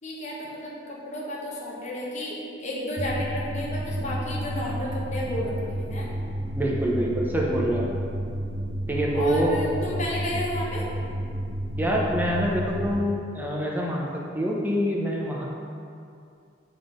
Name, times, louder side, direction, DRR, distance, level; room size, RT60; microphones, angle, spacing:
voice 1, 0.0-6.1 9.1-10.9, left 1 dB, 40° left, -4 dB, 1.2 m, -32 dB
sound 1, 3.0-13.0, right 1 dB, 85° right, 0.9 m, -31 dB
voice 2, 6.6-7.9 8.9-9.5 11.8-15.5, equal, 10° right, -3 dB, 0.7 m, -26 dB
7.0 x 3.8 x 5.1 m, 2.4 s
head